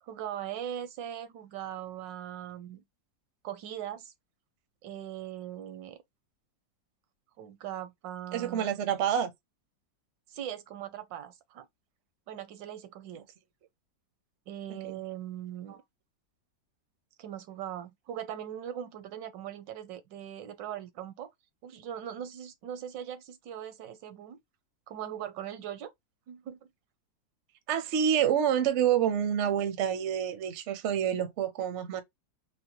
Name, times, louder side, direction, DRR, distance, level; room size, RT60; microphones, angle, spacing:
voice 1, 0.0-2.8 3.4-4.1 4.8-6.0 7.4-8.7 10.3-11.7 12.3-13.2 14.5-15.8 17.2-21.3 21.6-24.4 24.9-25.9 26.3-26.6, right 10 dB, 80° right, 1.3 m, -40 dB
voice 2, 8.3-9.3 14.7-15.0 15.7-15.8 27.7-32.0, right 9 dB, 65° right, 0.7 m, -28 dB
4.0 x 2.1 x 2.9 m
omnidirectional pair, 2.0 m